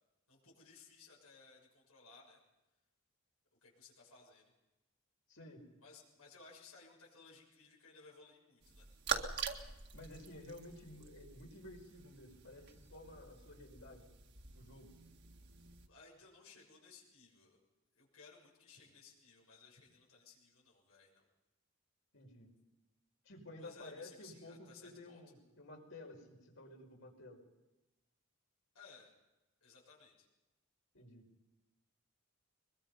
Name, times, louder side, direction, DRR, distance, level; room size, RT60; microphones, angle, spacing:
voice 1, 0.3-2.4 3.6-4.5 5.8-8.9 15.7-17.6 17.9-21.3 23.6-25.2 28.7-29.1 29.6-30.3, left 4 dB, 85° left, -3 dB, 6.9 m, -60 dB
voice 2, 5.3-5.7 9.9-14.1 14.5-15.0 22.1-22.5 23.2-27.4 30.9-31.2, left 1 dB, 60° left, 2 dB, 5.3 m, -53 dB
sound 1, 8.6-15.9, right 6 dB, 50° right, 1.8 m, -45 dB
23.0 x 22.5 x 5.6 m, 1.0 s
head